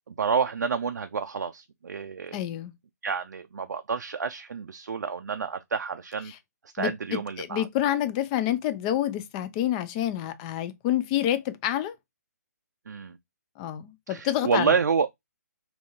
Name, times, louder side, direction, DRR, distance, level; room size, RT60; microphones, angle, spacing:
voice 1, 0.1-2.4 3.0-6.3 6.6-7.7 12.9-13.2 14.1-15.1, right 6 dB, 75° right, 0.4 m, -29 dB
voice 2, 2.3-2.7 6.3-6.4 6.8-12.0 13.6-14.7, left 12 dB, 25° left, 0.4 m, -28 dB
3.4 x 2.7 x 2.5 m
hypercardioid pair, 140°, 9 cm